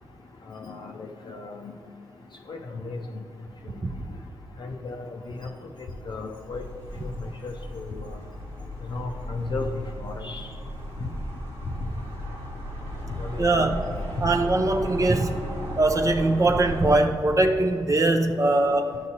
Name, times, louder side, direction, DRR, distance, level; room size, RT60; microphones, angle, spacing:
voice 1, 0.5-1.7 2.5-3.0 4.6-5.5 6.1-6.6 7.0-8.2 8.9-9.7 10.0-10.4 13.2-13.7, left 3 dB, 55° left, 2 dB, 0.5 m, -35 dB
sound 1, 6.5-17.0, equal, 80° right, 1.4 m, -36 dB
voice 2, 13.4-13.8 14.2-15.3 15.8-19.0, right 2 dB, 35° right, 3 dB, 0.6 m, -21 dB
10.5 x 6.3 x 2.8 m, 2.4 s
cardioid pair, 55°, 9 cm